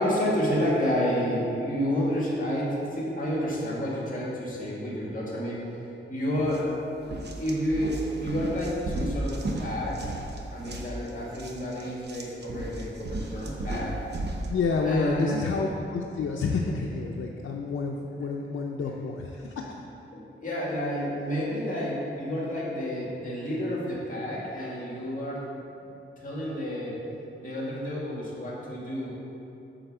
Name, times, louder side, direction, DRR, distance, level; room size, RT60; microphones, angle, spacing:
voice 1, 0.0-5.6 6.1-6.8 7.4-10.1 10.5-14.0 14.8-15.4 18.8-18.9 20.1-25.5 25.8-25.9 26.2-27.0 27.4-29.1, equal, 40° left, -5 dB, 2.1 m, -30 dB
sound 1, 6.4-6.6 7.0-14.5, right 1 dB, 55° right, 0.8 m, -35 dB
voice 2, 14.5-19.5, left 4 dB, 85° left, 0 dB, 0.6 m, -29 dB
9.0 x 4.1 x 6.7 m, 2.8 s
wide cardioid pair, 165°, 21 cm